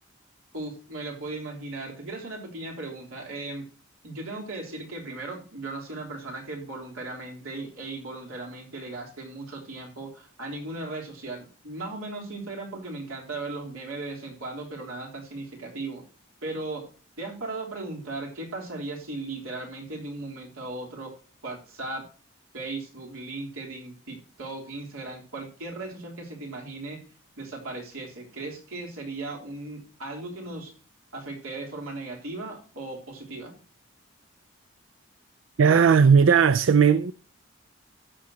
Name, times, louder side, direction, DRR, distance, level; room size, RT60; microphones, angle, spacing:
voice 1, 0.5-3.7 4.0-16.0 16.4-16.9 17.2-21.1 21.4-22.1 22.5-27.0 27.4-30.7 31.1-33.6, right 2 dB, 90° right, 3.5 m, -37 dB
voice 2, 35.6-37.1, right 6 dB, 70° right, 0.4 m, -17 dB
15.5 x 7.0 x 2.8 m
head